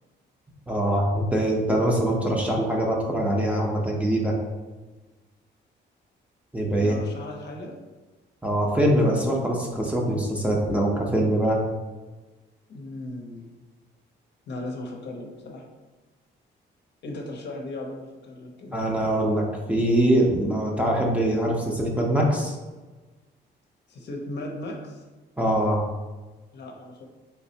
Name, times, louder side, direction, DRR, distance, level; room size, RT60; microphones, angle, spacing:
voice 1, 0.7-4.3 6.5-7.0 8.4-11.6 18.7-22.5 25.4-25.8, right 1 dB, 5° right, -2 dB, 0.7 m, -23 dB
voice 2, 6.7-7.8 12.7-13.5 14.5-15.7 17.0-18.8 23.9-25.0 26.5-27.1, left 1 dB, 60° left, 0 dB, 0.7 m, -37 dB
3.4 x 3.0 x 2.8 m, 1.2 s
cardioid pair, 90°, 20 cm